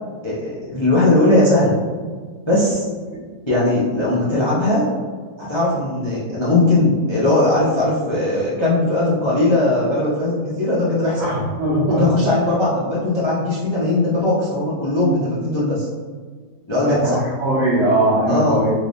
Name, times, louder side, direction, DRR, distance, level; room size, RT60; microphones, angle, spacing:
voice 1, 0.2-1.8 2.5-2.9 3.5-4.8 5.4-11.3 11.9-15.9 16.7-17.2 18.3-18.7, left 2 dB, 30° left, -9 dB, 0.5 m, -19 dB
voice 2, 11.2-12.0 16.8-18.7, right 1 dB, 60° right, -7 dB, 0.7 m, -20 dB
3.6 x 3.2 x 2.6 m, 1.5 s
omnidirectional pair, 1.8 m